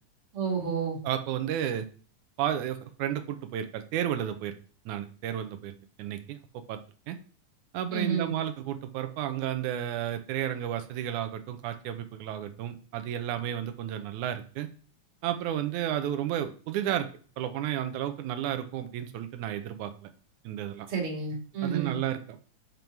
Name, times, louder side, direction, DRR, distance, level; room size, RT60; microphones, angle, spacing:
voice 1, 0.3-1.0 7.9-8.3 20.9-22.0, right 6 dB, 45° right, -1 dB, 3.2 m, -30 dB
voice 2, 1.0-1.9 2.4-4.6 4.9-5.7 6.0-6.8 7.1-7.2 7.7-14.7 15.2-17.1 17.4-20.1 20.4-20.9 21.6-22.5, right 11 dB, 85° right, 8 dB, 2.2 m, -32 dB
7.6 x 5.4 x 4.6 m, 0.40 s
omnidirectional pair, 3.4 m